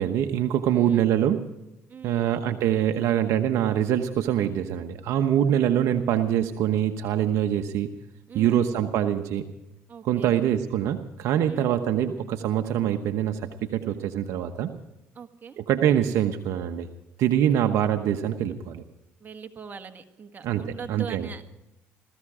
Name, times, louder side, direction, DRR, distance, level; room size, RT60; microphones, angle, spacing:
voice 1, 0.0-1.4 2.0-7.9 8.3-9.4 10.0-14.7 15.6-16.9 17.2-18.8 20.4-21.3, right 10 dB, 75° right, 6 dB, 1.0 m, -24 dB
voice 2, 0.7-1.1 1.9-2.3 8.3-8.7 9.9-10.4 11.4-11.8 15.2-15.6 17.5-17.6 19.2-21.4, right 6 dB, 35° right, 7 dB, 1.7 m, -41 dB
17.5 x 14.5 x 4.9 m, 0.95 s
supercardioid pair, 85°, 5 cm